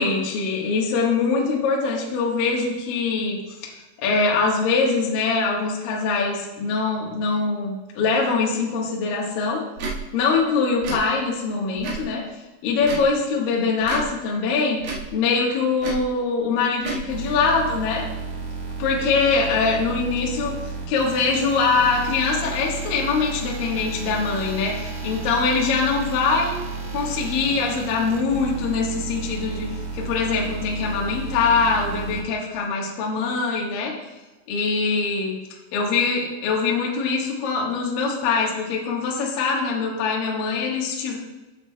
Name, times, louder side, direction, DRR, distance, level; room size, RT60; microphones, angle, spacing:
voice 1, 0.0-9.6 10.1-14.8 15.1-18.1 18.8-26.6 26.9-33.9 34.5-35.4 35.7-41.2, left 4 dB, 65° left, -2 dB, 2.4 m, -23 dB
Tick / Tick-tock, 9.8-10.0 10.8-11.0 11.8-12.1 12.8-13.1 13.8-14.1 14.8-15.1 15.8-16.1 16.8-17.0, right 4 dB, 60° right, 3.0 m, -30 dB
sound 1, 17.1-32.2, right 4 dB, 80° right, 4.2 m, -32 dB
13.5 x 8.2 x 2.3 m, 1.1 s
omnidirectional pair, 5.8 m